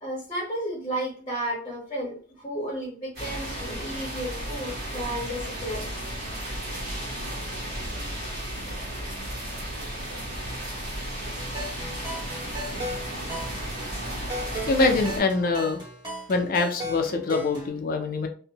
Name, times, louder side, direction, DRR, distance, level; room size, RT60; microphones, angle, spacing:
voice 1, 0.0-5.9, right 1 dB, 25° left, -4 dB, 0.8 m, -33 dB
sound 1, 3.2-15.2, right 1 dB, 55° right, 1.0 m, -34 dB
sound 2, 11.4-17.7, equal, 25° right, 1.1 m, -36 dB
voice 2, 14.7-15.8 16.3-18.3, left 3 dB, 50° left, 5 dB, 0.4 m, -24 dB
2.5 x 2.1 x 2.8 m, 0.41 s
head